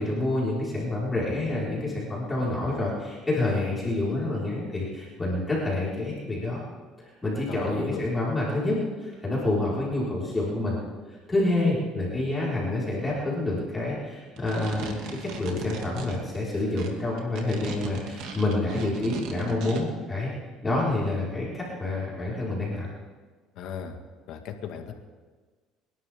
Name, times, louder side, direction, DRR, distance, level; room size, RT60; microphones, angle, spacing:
voice 1, 0.0-6.6 7.0-10.8 11.3-20.3 20.6-22.9, left 2 dB, 15° left, -7 dB, 5.3 m, -28 dB
voice 2, 7.5-8.0 23.6-24.0 24.3-24.9, left 8 dB, 65° left, 5 dB, 2.0 m, -36 dB
sound 1, 14.2-19.8, right 5 dB, 70° right, 2.5 m, -38 dB
29.0 x 11.5 x 3.8 m, 1.4 s
cardioid pair, 105°, 0 cm